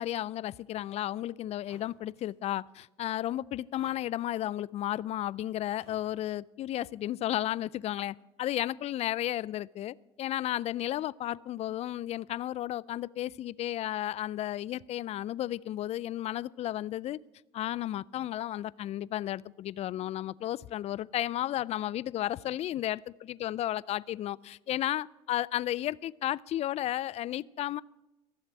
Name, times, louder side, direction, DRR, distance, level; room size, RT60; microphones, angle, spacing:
voice 1, 0.0-17.2 17.5-27.8, left 13 dB, 45° left, 0.4 m, -33 dB
sound 1, 1.7-1.9 2.2-2.3 3.2-3.3 3.7-4.3 5.3-5.4 5.7-6.1, right 3 dB, 85° right, 5.4 m, -57 dB
14.5 x 7.4 x 7.3 m
hypercardioid pair, 75°, 15 cm